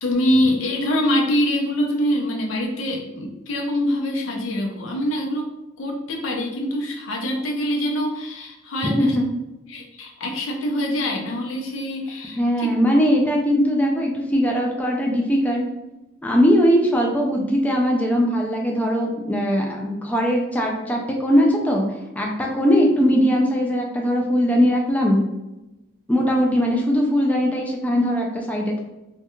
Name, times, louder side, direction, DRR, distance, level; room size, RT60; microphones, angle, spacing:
voice 1, 0.0-5.5 5.8-9.2 9.7-12.7, left 1 dB, 80° left, 1 dB, 0.5 m, -24 dB
voice 2, 8.8-9.3 12.3-15.7 16.2-21.8 22.2-25.2 26.1-28.8, equal, 10° left, -1 dB, 0.3 m, -20 dB
2.3 x 2.2 x 2.9 m, 0.98 s
head